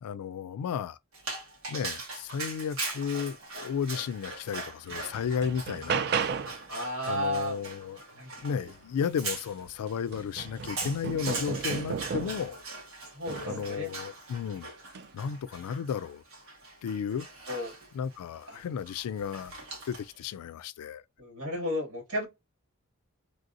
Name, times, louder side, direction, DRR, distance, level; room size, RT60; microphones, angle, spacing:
voice 1, 0.0-1.0 1.7-6.0 7.1-8.0 8.4-12.6 13.4-14.7 15.1-16.2 16.8-17.3 17.9-19.6 19.8-21.0, left 7 dB, 85° left, 0.3 m, -33 dB
Dog, 1.1-20.2, right 3 dB, 70° right, 1.6 m, -41 dB
sound 1, 4.3-4.4 4.9-6.7 9.1-9.2 9.6-12.6 13.3-13.8 14.8-15.1, right 6 dB, 45° right, 0.3 m, -34 dB
voice 2, 6.7-7.7 8.1-8.7 13.1-13.9 17.5-17.7 18.5-18.6 21.2-22.3, equal, 85° right, 2.1 m, -33 dB
3.3 x 2.6 x 2.5 m
head